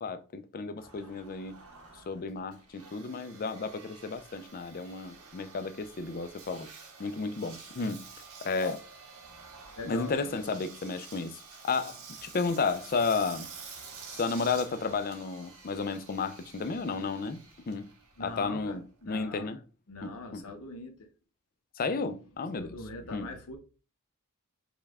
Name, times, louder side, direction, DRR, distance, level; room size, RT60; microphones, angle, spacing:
voice 1, 0.0-1.6 2.1-6.7 7.0-8.0 8.4-8.8 9.8-13.5 14.1-17.4 17.7-17.9 18.2-19.6 20.0-20.4 21.8-22.8 23.1-23.3, left 4 dB, 40° left, 0.4 m, -33 dB
Engine, 0.8-19.2, right 5 dB, 70° right, 1.2 m, -49 dB
voice 2, 9.8-10.5 18.2-19.5 19.9-21.1 22.6-23.6, left 2 dB, 75° left, 0.7 m, -42 dB
5.2 x 2.3 x 3.5 m
head